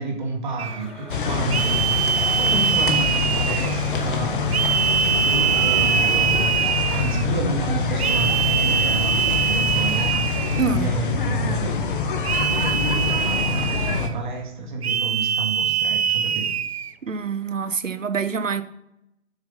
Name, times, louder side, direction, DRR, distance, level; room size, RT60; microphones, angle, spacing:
voice 1, 0.0-1.8 2.1-4.5 5.2-10.5 10.8-11.9 12.3-16.5, right 3 dB, 40° right, 1 dB, 2.1 m, -30 dB
Domestic sounds home sounds, 0.6-5.6, left 1 dB, ahead, 0.6 m, -42 dB
sound 1, 0.6-0.8 1.5-3.9 4.5-7.3 8.0-10.8 12.2-14.1 14.8-16.9, right 7 dB, 55° right, 0.6 m, -23 dB
sound 2, 1.1-14.1, left 5 dB, 40° left, 1.2 m, -25 dB
voice 2, 10.6-10.9 17.0-18.6, right 5 dB, 85° right, 13 dB, 1.0 m, -26 dB
8.2 x 6.7 x 5.6 m, 0.80 s
figure-of-eight pair, 150°, 38 cm